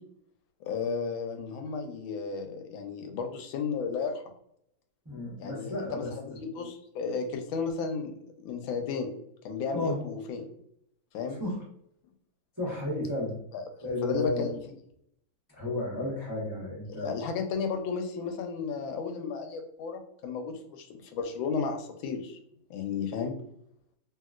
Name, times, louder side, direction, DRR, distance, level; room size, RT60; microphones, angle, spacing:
voice 1, 0.6-4.2 5.4-8.1 8.4-9.1 9.4-10.5 11.1-11.4 13.5-13.6 14.0-14.6 16.9-22.4 22.7-23.3, left 5 dB, 85° left, 5 dB, 1.4 m, -33 dB
voice 2, 5.0-6.4 9.7-10.0 11.3-11.6 12.6-13.4 13.8-14.6 15.5-17.1, left 2 dB, 30° right, -6 dB, 0.3 m, -33 dB
3.0 x 2.8 x 2.3 m, 0.73 s
omnidirectional pair, 2.1 m